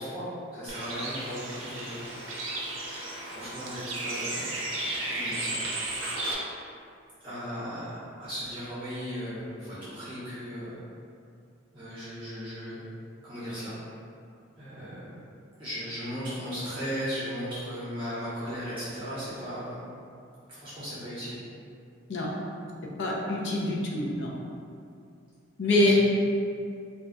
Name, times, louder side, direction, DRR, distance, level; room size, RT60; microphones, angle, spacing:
voice 1, 0.0-2.1 3.2-4.5 5.1-5.6 7.2-10.8 11.7-12.8 13.2-13.7 14.6-15.1 15.6-19.8 20.5-21.4 25.8-25.9, equal, 25° right, -12 dB, 0.8 m, -36 dB
Bird, 0.7-6.3, right 2 dB, 70° right, 0.5 m, -34 dB
voice 2, 23.0-24.3 25.6-25.9, left 1 dB, 60° left, -3 dB, 0.5 m, -25 dB
2.4 x 2.1 x 3.7 m, 2.4 s
head